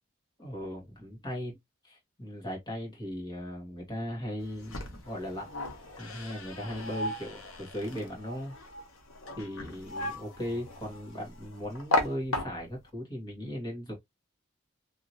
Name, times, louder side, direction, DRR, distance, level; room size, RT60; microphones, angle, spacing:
voice 1, 0.4-1.6 1.8-5.5 6.0-8.5 9.4-13.9, equal, 20° left, 1.4 m, -38 dB
sound 1, 4.4-12.9, left 2 dB, 85° left, 0.8 m, -36 dB
2.9 x 2.8 x 2.6 m
head